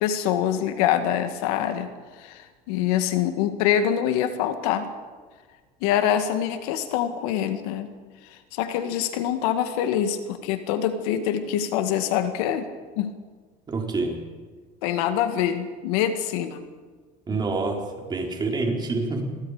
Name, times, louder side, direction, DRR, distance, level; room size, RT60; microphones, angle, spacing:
voice 1, 0.0-1.9 2.2-4.9 5.8-7.9 8.5-12.7 13.0-13.1 14.8-16.6, left 10 dB, 85° left, 8 dB, 2.0 m, -25 dB
voice 2, 13.7-14.2 17.3-19.4, right 3 dB, 20° right, 1 dB, 4.3 m, -27 dB
27.5 x 22.5 x 5.1 m, 1.5 s
cardioid pair, 130°, 19 cm